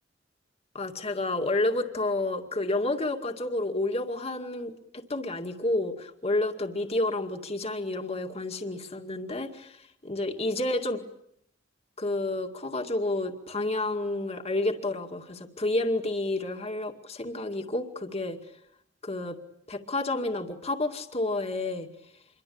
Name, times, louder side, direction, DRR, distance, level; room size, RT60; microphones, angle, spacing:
voice 1, 0.7-11.0 12.0-18.4 19.0-19.4 19.7-21.9, left 2 dB, 35° left, 5 dB, 2.2 m, -30 dB
27.0 x 23.0 x 8.7 m, 0.76 s
head